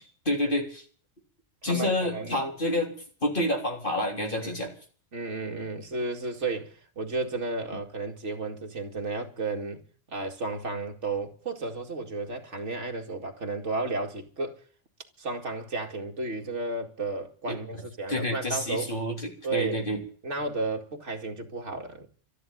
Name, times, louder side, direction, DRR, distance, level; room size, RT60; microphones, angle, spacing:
voice 1, 0.3-0.8 1.6-2.9 3.2-4.7 17.5-17.8 18.1-20.0, left 1 dB, 40° left, 3.7 m, -28 dB
voice 2, 1.6-2.6 4.4-4.6 5.1-9.8 10.1-14.6 15.2-18.9 19.4-19.9 20.2-22.1, right 3 dB, 65° right, 2.5 m, -33 dB
13.0 x 11.0 x 9.2 m
omnidirectional pair, 1.3 m